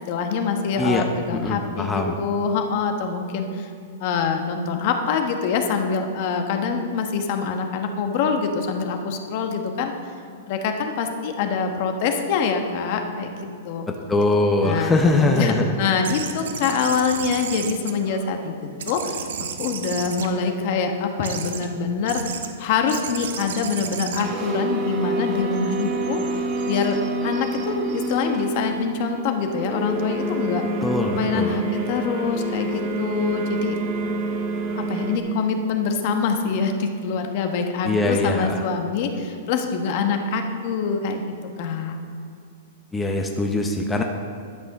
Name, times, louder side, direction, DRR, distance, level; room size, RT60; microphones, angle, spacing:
voice 1, 0.1-3.7 4.0-9.9 10.5-13.3 13.6-13.9 14.6-19.2 19.6-27.0 27.2-30.6 31.1-33.8 34.7-42.0, left 5 dB, 50° left, 5 dB, 1.1 m, -25 dB
voice 2, 1.3-2.2 14.1-15.7 30.8-31.6 37.8-38.6 42.9-44.0, left 2 dB, 10° left, 2 dB, 0.7 m, -22 dB
sound 1, 16.0-18.5 18.8-20.7 21.2-21.7 22.1-22.5 22.9-25.4, right 7 dB, 80° right, 1.0 m, -33 dB
sound 2, 24.2-35.2, right 2 dB, 35° right, 1.5 m, -27 dB
11.0 x 6.2 x 5.9 m, 2.3 s
hypercardioid pair, 145°, 0 cm